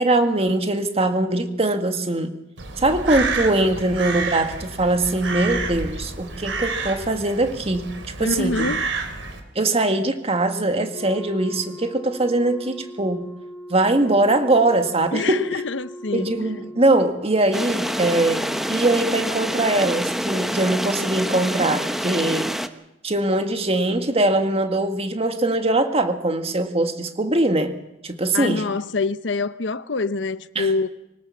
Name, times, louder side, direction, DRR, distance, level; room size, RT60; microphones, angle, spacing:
voice 1, 0.0-2.3 2.8-7.9 8.2-8.7 9.6-13.3 13.7-15.6 16.1-22.5 23.0-27.7 28.0-28.6 30.6-30.7, right 2 dB, 35° right, 2.0 m, -21 dB
Crow, 2.6-9.4, right 4 dB, 85° right, 3.4 m, -29 dB
voice 2, 8.2-8.9 15.1-16.6 28.3-30.9, left 3 dB, 75° left, 0.9 m, -26 dB
Wind instrument woodwind instrument, 10.8-17.0, equal, 35° left, 4.4 m, -39 dB
sound 1, 17.5-22.7, equal, ahead, 0.9 m, -26 dB
25.0 x 18.5 x 7.3 m
head